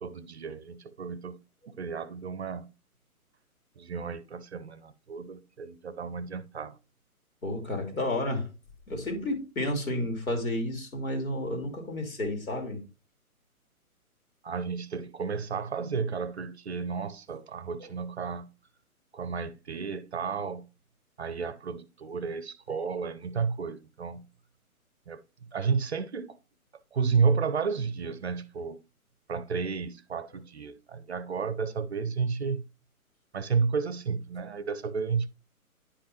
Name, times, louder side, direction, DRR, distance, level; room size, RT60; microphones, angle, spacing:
voice 1, 0.0-1.4 1.7-2.7 3.8-6.7 14.4-18.5 19.1-20.7 21.2-24.3 25.1-26.4 26.9-28.8 29.3-32.6 33.3-35.3, right 5 dB, 50° right, 0.6 m, -32 dB
voice 2, 7.4-8.5 8.9-12.8 17.8-17.9 30.2-30.3 34.4-34.5, left 1 dB, 65° left, 3.1 m, -31 dB
10.0 x 5.2 x 2.9 m
figure-of-eight pair, 130°, 44 cm